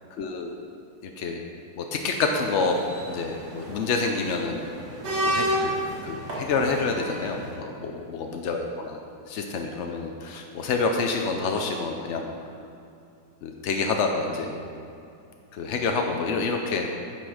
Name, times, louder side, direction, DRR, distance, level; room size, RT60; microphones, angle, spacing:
voice 1, 0.2-0.5 1.0-1.4 1.8-4.7 5.2-5.7 6.0-9.0 9.3-12.3 13.4-14.5 15.5-16.9, left 4 dB, 80° left, 3 dB, 0.6 m, -28 dB
sound 1, 2.2-7.5, right 1 dB, 65° right, 2.0 m, -31 dB
9.4 x 6.1 x 4.9 m, 2.6 s
omnidirectional pair, 2.0 m